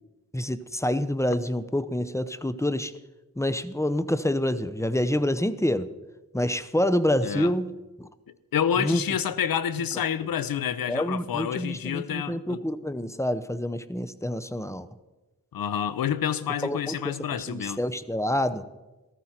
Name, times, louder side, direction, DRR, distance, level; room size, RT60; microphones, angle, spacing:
voice 1, 0.3-2.9 3.4-5.9 6.3-8.1 8.8-9.0 10.9-14.9 16.6-17.0 17.5-18.6, left 1 dB, 10° left, 0.8 m, -27 dB
voice 2, 7.2-7.5 8.5-12.6 15.5-17.8, left 8 dB, 85° left, 0.6 m, -28 dB
13.5 x 13.5 x 4.4 m
cardioid pair, 40°, 35 cm